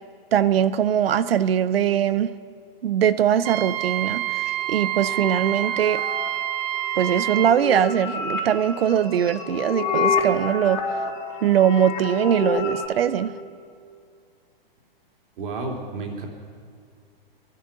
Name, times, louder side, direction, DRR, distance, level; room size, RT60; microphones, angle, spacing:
voice 1, 0.3-2.3 2.8-6.0 7.0-11.0 11.4-13.3, right 9 dB, 80° right, 15 dB, 0.8 m, -21 dB
Wind instrument woodwind instrument, 3.4-7.6, right 13 dB, 40° right, 0.6 m, -27 dB
sound 1, 4.5-12.9, left 3 dB, 45° left, 2.8 m, -29 dB
voice 2, 15.4-16.3, right 3 dB, 60° right, 1 dB, 3.0 m, -31 dB
21.0 x 11.5 x 5.9 m, 2.2 s
hypercardioid pair, 145°, 29 cm